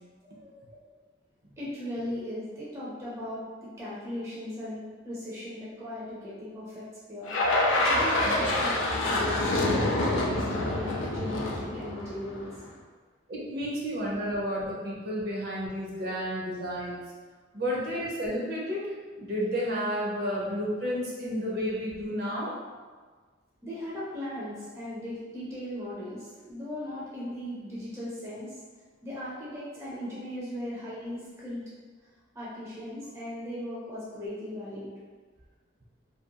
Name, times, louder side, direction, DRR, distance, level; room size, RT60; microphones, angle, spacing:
voice 1, 0.2-0.7 1.4-12.5 23.6-28.6 29.0-31.6 32.3-34.9, left 1 dB, 15° right, -8 dB, 0.5 m, -38 dB
sound 1, 7.3-12.6, left 1 dB, 85° left, 0.4 m, -27 dB
voice 2, 13.3-17.0 17.5-18.8 19.2-22.5, equal, 55° right, -5 dB, 0.7 m, -31 dB
2.8 x 2.5 x 2.2 m, 1.4 s
head